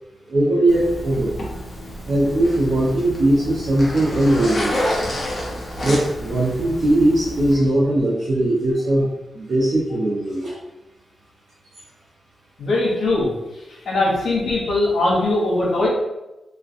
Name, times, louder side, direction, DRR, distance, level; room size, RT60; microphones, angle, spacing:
voice 1, 0.3-1.3 2.1-4.9 5.8-9.1 9.3-10.6, right 1 dB, 60° right, -7 dB, 0.5 m, -19 dB
Zipper (clothing), 0.7-7.5, equal, 40° left, 0.7 m, -29 dB
voice 2, 12.6-13.3 13.9-15.9, left 2 dB, 75° left, -5 dB, 0.8 m, -20 dB
2.4 x 2.1 x 2.5 m, 0.97 s
cardioid pair, 85°, 0 cm